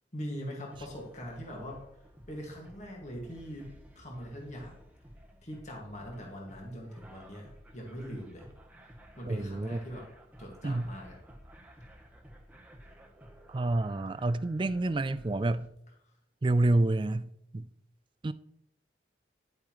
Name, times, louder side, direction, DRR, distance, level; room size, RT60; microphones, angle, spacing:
voice 1, 0.1-1.8 2.3-4.7 5.4-7.4 7.7-8.5 9.2-10.0 10.4-11.2, equal, 40° left, 1.9 m, -42 dB
sound 1, 0.7-15.7, equal, 10° right, 1.0 m, -54 dB
voice 2, 9.3-9.8 10.6-10.9 13.5-15.7 16.4-17.7 18.2-18.3, right 2 dB, 25° right, 0.3 m, -28 dB
10.5 x 8.4 x 3.1 m
head